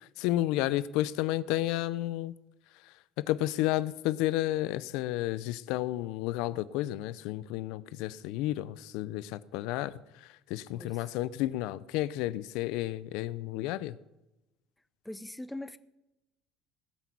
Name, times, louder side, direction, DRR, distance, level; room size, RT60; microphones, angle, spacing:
voice 1, 0.2-2.3 3.3-10.0 10.5-13.9, left 15 dB, 75° left, 18 dB, 0.5 m, -31 dB
voice 2, 15.1-15.8, left 1 dB, 5° left, 13 dB, 0.5 m, -41 dB
17.0 x 6.1 x 8.5 m, 0.95 s
cardioid pair, 140°, 0 cm